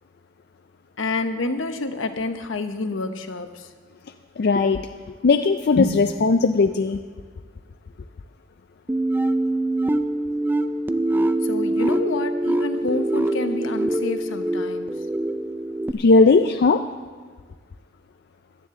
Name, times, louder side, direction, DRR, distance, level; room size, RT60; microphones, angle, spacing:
voice 1, 1.0-3.7 5.8-6.1 11.4-15.0, left 3 dB, 75° left, 8 dB, 0.9 m, -28 dB
voice 2, 4.4-4.9 5.2-7.0 15.9-16.8, left 4 dB, 55° left, 7 dB, 0.4 m, -18 dB
sound 1, 8.9-15.9, right 1 dB, 10° right, 0.3 m, -24 dB
17.0 x 12.0 x 3.7 m, 1.5 s
head